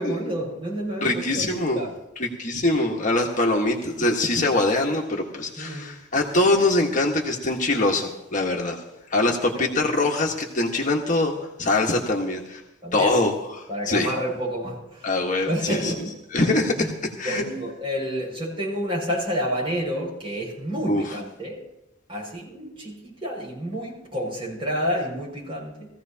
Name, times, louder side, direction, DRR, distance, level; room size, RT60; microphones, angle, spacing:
voice 1, 0.0-1.9 5.6-5.9 12.1-12.2 12.8-13.1 13.7-15.1 15.5-16.2 16.8-16.9 17.2-21.6 22.1-25.9, equal, 30° right, -4 dB, 5.8 m, -29 dB
voice 2, 1.0-1.8 2.2-8.8 9.1-12.6 12.9-14.1 15.0-15.9 16.3-17.4 20.9-21.0, left 2 dB, 45° left, 0 dB, 1.4 m, -23 dB
20.0 x 15.5 x 2.8 m, 0.90 s
head